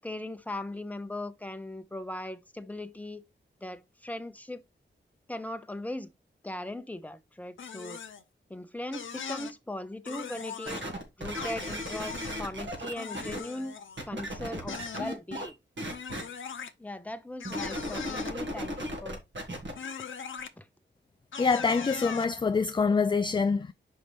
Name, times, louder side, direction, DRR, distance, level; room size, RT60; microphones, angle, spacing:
voice 1, 0.0-3.2 3.6-4.6 5.3-6.1 6.4-8.0 8.5-10.9 11.2-13.7 14.1-15.6 16.8-18.7 19.0-19.2 20.6-20.7, left 1 dB, 5° left, 0.7 m, -39 dB
sound 1, 7.6-8.2 8.9-9.5 10.0-10.8 11.3-12.4 13.0-14.0 14.7-15.0 15.9-16.7 17.4-18.4 19.7-20.5 21.3-22.3, left 6 dB, 75° left, 0.6 m, -39 dB
sound 2, 10.7-13.4 14.0-15.5 15.8-16.2 17.4-19.7 20.4-20.5, equal, 70° right, 1.9 m, -36 dB
voice 2, 21.4-23.7, left 4 dB, 25° left, 0.3 m, -25 dB
5.8 x 5.3 x 3.3 m
wide cardioid pair, 70°, 20 cm